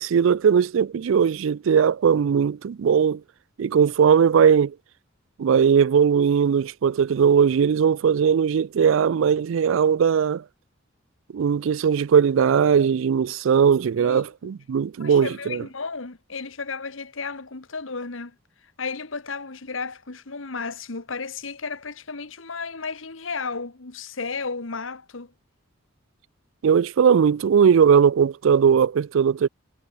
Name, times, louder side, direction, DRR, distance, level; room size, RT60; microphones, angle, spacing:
voice 1, 0.0-3.2 3.6-4.7 5.4-10.4 11.3-15.6 26.6-29.5, right 7 dB, 70° right, 0.4 m, -19 dB
voice 2, 14.0-14.5 15.0-18.3 18.8-25.3, left 4 dB, 70° left, 1.5 m, -33 dB
head